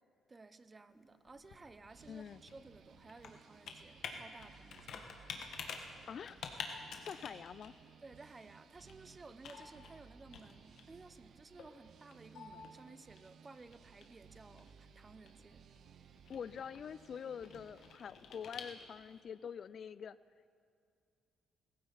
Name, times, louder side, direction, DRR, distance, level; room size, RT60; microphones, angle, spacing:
voice 1, 0.3-5.1 8.0-15.6, right 3 dB, 25° right, 13 dB, 0.7 m, -56 dB
Computer keyboard, 0.9-19.2, left 5 dB, 70° left, 1.4 m, -51 dB
sound 1, 1.9-18.0, right 7 dB, 65° right, 0.6 m, -61 dB
voice 2, 2.1-2.4 6.1-6.4 7.1-7.7 16.3-20.2, left 7 dB, 55° left, 17 dB, 0.3 m, -45 dB
21.0 x 15.0 x 4.1 m, 2.3 s
cardioid pair, 90°, 0 cm